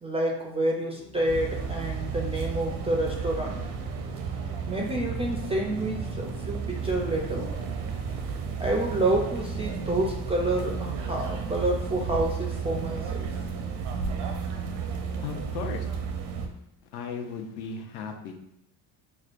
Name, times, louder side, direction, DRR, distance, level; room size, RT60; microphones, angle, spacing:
voice 1, 0.0-3.6 4.7-7.5 8.6-13.3, right 1 dB, 15° right, 0 dB, 0.3 m, -28 dB
Organ, 0.8-11.5, equal, 45° left, 1.0 m, -43 dB
sound 1, 1.3-16.5, right 6 dB, 90° right, 0.7 m, -33 dB
voice 2, 15.2-15.9 16.9-18.4, left 5 dB, 70° left, 4 dB, 0.7 m, -36 dB
6.1 x 2.2 x 2.4 m, 0.80 s
cardioid pair, 130°, 41 cm